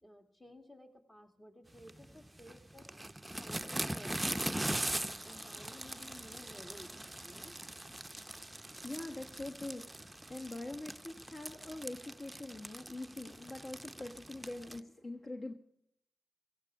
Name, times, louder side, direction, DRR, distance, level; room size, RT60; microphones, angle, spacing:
voice 1, 0.0-2.9 3.4-4.8 5.2-7.6, left 1 dB, 20° left, 5 dB, 2.4 m, -55 dB
sound 1, 1.7-14.8, right 1 dB, 15° right, 0.6 m, -41 dB
voice 2, 8.0-15.5, left 2 dB, 45° left, 4 dB, 1.2 m, -44 dB
17.0 x 15.0 x 3.6 m, 0.74 s
cardioid pair, 50°, 0 cm